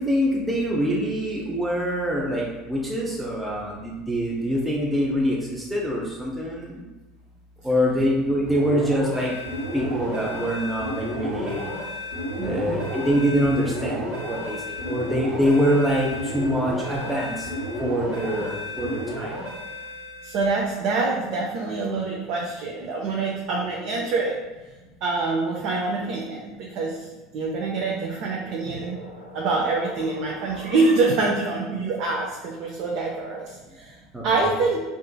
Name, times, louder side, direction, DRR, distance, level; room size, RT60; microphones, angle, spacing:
voice 1, 0.0-6.8 7.6-9.3 9.7-11.6 12.4-17.5 17.8-19.4 34.1-34.5, equal, 5° right, -4 dB, 0.6 m, -25 dB
sound 1, 8.5-20.6, left 1 dB, 80° right, 1.4 m, -32 dB
voice 2, 12.4-12.8 20.2-24.4 25.0-27.1 27.3-29.0 29.3-34.0 34.2-34.8, right 3 dB, 60° right, -2 dB, 0.4 m, -25 dB
sound 2, 28.0-31.5, equal, 85° left, 0.5 m, -41 dB
3.6 x 2.5 x 2.3 m, 1.1 s
hypercardioid pair, 75°, 0 cm